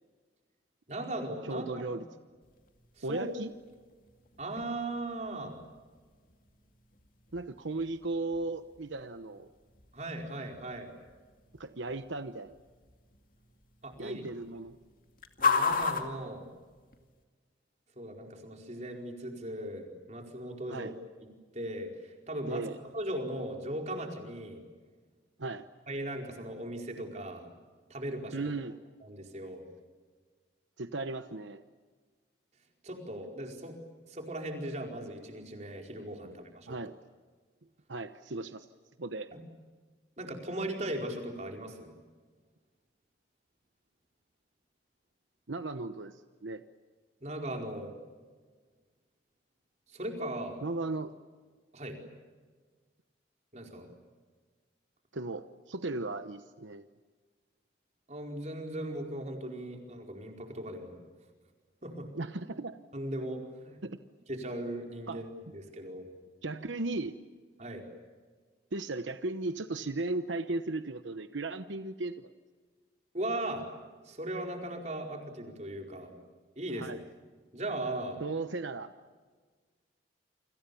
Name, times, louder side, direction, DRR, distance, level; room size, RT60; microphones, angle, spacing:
voice 1, 0.9-1.7 3.0-3.3 4.4-5.6 9.9-10.9 13.8-14.2 15.4-16.5 18.0-20.9 21.5-22.6 22.9-24.6 25.9-27.5 27.9-28.4 29.0-29.6 32.8-33.8 34.1-36.7 39.3-39.4 40.2-41.9 47.2-47.9 49.9-50.6 51.7-52.0 53.5-53.9 58.1-61.0 61.8-62.1 62.9-63.8 64.3-66.1 67.6-67.8 73.1-73.6 74.0-76.1 76.6-77.0 77.5-78.2, right 1 dB, 40° right, 2 dB, 4.7 m, -38 dB
voice 2, 1.4-2.0 3.0-3.5 7.3-9.5 11.6-12.5 14.0-14.8 20.7-20.9 22.5-22.8 25.4-25.7 28.3-28.8 30.8-31.6 36.2-36.4 36.7-37.0 37.9-38.7 39.0-39.3 45.5-46.6 50.6-51.1 55.1-56.9 62.1-62.8 63.8-64.0 65.1-65.2 66.4-67.1 68.7-72.3 76.8-77.0 78.2-78.9, right 2 dB, 85° right, 10 dB, 1.0 m, -36 dB
sound 1, 2.4-17.2, left 4 dB, 45° left, 2.5 m, -38 dB
29.0 x 26.0 x 7.1 m, 1.5 s
head